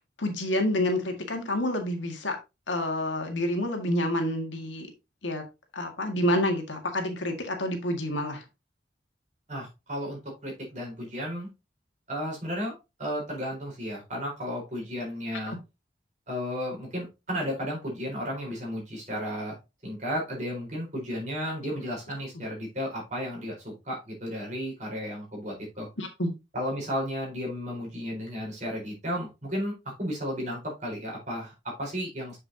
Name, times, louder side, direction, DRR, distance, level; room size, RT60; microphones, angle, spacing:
voice 1, 0.2-2.4 2.7-4.9 5.2-5.4 5.7-8.4 15.5-15.6 26.0-26.3, left 1 dB, 90° left, 4 dB, 1.9 m, -28 dB
voice 2, 9.5-11.5 12.1-12.7 13.0-15.5 16.3-19.6 19.8-25.9 26.5-29.7 30.0-32.4, equal, 40° right, -1 dB, 4.3 m, -33 dB
7.3 x 6.6 x 2.8 m, 0.25 s
head